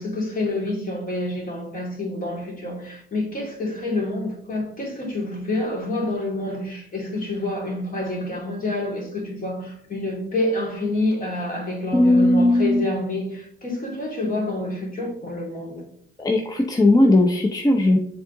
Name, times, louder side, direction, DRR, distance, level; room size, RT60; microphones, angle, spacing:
voice 1, 0.0-15.8, left 2 dB, 45° left, 2.6 m, -27 dB
voice 2, 11.9-12.9 16.2-18.0, left 1 dB, 20° left, 0.7 m, -17 dB
7.2 x 3.7 x 3.9 m
cardioid pair, 90°, 20 cm